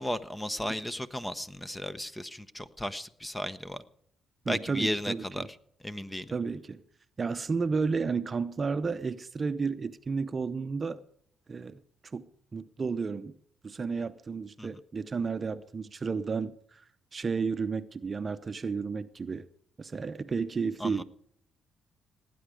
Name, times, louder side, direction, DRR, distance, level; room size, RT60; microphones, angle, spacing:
voice 1, 0.0-3.8 4.5-5.5 5.8-6.3 14.6-14.7 20.8-21.0, left 1 dB, 10° left, 0.9 m, -34 dB
voice 2, 4.4-5.5 6.3-6.8 7.2-11.0 11.5-11.8 12.1-12.2 12.5-13.3 13.6-16.8 17.1-19.5 19.8-21.0, right 5 dB, 35° right, 0.7 m, -32 dB
18.5 x 9.4 x 5.0 m
cardioid pair, 90°, 0 cm